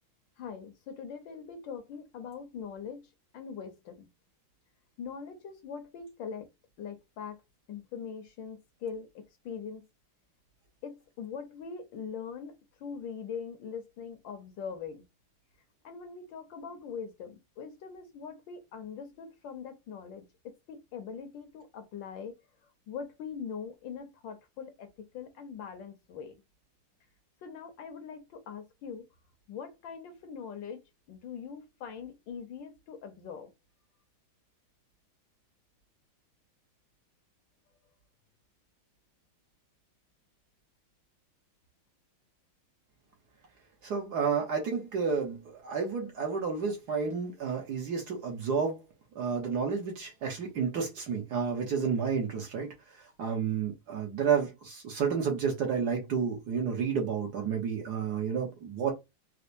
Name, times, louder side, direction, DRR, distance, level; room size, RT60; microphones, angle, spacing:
voice 1, 0.4-3.0 3.3-4.1 5.0-6.5 6.8-7.4 7.7-9.8 10.8-15.0 15.8-22.3 22.9-26.4 27.4-29.1 29.5-30.8 31.1-33.5, left 6 dB, 70° left, 1.3 m, -42 dB
voice 2, 43.8-48.8 49.1-52.7 53.2-58.9, right 6 dB, 60° right, 1.3 m, -31 dB
4.3 x 2.1 x 2.5 m
omnidirectional pair, 2.3 m